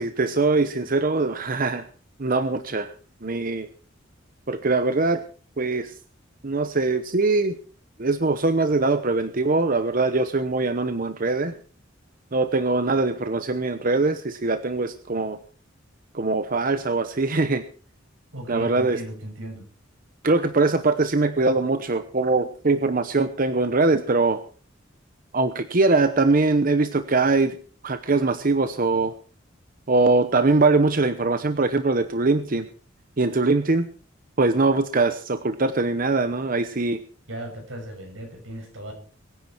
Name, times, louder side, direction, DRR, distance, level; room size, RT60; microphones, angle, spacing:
voice 1, 0.0-1.9 2.2-2.9 3.2-3.7 4.5-5.2 5.6-5.9 6.4-7.5 8.0-11.5 12.3-15.4 16.1-17.6 18.5-19.0 20.2-24.4 25.3-27.6 27.8-29.1 29.9-32.7 33.2-33.9 34.4-37.0, right 3 dB, 45° right, 10 dB, 0.9 m, -22 dB
voice 2, 18.3-19.6 37.3-38.9, equal, 80° right, 3 dB, 6.6 m, -36 dB
22.5 x 10.0 x 4.5 m, 0.41 s
head